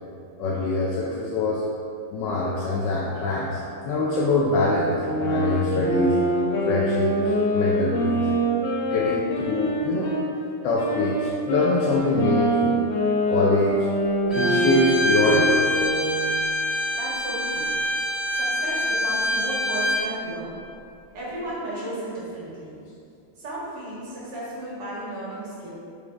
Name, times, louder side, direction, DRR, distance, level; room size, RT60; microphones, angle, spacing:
voice 1, 0.4-1.6 2.1-4.9 5.2-6.2 6.7-7.2 7.5-8.3 8.9-10.1 10.6-12.8 13.3-13.9 14.3-15.6, left 2 dB, 70° left, -4 dB, 1.3 m, -24 dB
sound 1, 5.0-10.3 10.7-16.4, equal, 85° left, 1.9 m, -25 dB
Bowed string instrument, 14.3-20.1, left 1 dB, ahead, 1.0 m, -25 dB
voice 2, 16.9-17.7 18.3-20.6 21.1-22.8 23.4-25.7, right 1 dB, 55° right, -7 dB, 2.4 m, -34 dB
5.5 x 5.0 x 4.6 m, 2.5 s
omnidirectional pair, 2.3 m